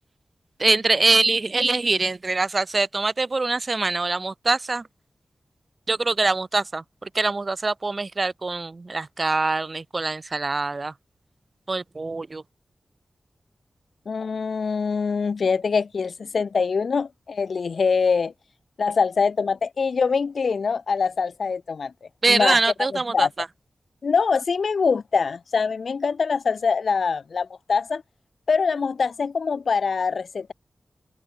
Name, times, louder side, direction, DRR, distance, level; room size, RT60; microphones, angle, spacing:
voice 1, 0.6-4.8 5.9-6.8 7.1-10.9 11.7-12.4 22.2-23.3, right 3 dB, 40° right, 0.4 m, -23 dB
voice 2, 14.1-18.3 18.8-21.9 22.3-23.3 24.0-28.0 28.5-30.5, left 5 dB, 75° left, 0.4 m, -24 dB
wide cardioid pair, 110°, 0 cm